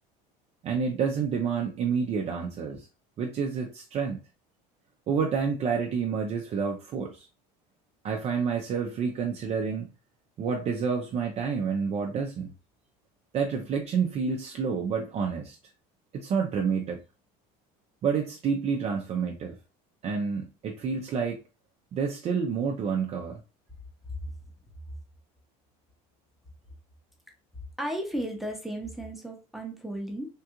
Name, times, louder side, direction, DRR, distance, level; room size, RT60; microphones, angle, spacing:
voice 1, 0.6-2.9 3.2-4.2 5.1-7.3 8.0-9.9 10.4-12.5 13.3-15.6 16.1-17.0 18.0-19.6 20.0-21.4 21.9-23.4, right 6 dB, 35° right, 0.5 m, -29 dB
voice 2, 27.8-30.3, right 1 dB, ahead, 0.8 m, -34 dB
3.6 x 2.3 x 2.8 m
cardioid pair, 125°, 18 cm